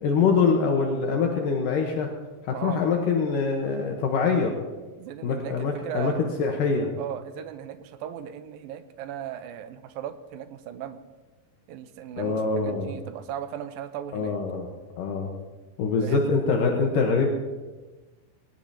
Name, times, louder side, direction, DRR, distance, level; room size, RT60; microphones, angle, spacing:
voice 1, 0.0-2.1 2.4-4.5 5.2-6.9 12.2-12.9 14.1-14.7 15.0-15.3 15.8-17.3, left 5 dB, 70° left, 1 dB, 2.7 m, -24 dB
voice 2, 5.0-6.2 7.0-11.0 11.7-14.4 16.0-16.3, right 10 dB, 85° right, 9 dB, 2.6 m, -37 dB
20.0 x 19.0 x 2.9 m, 1.2 s
omnidirectional pair, 4.2 m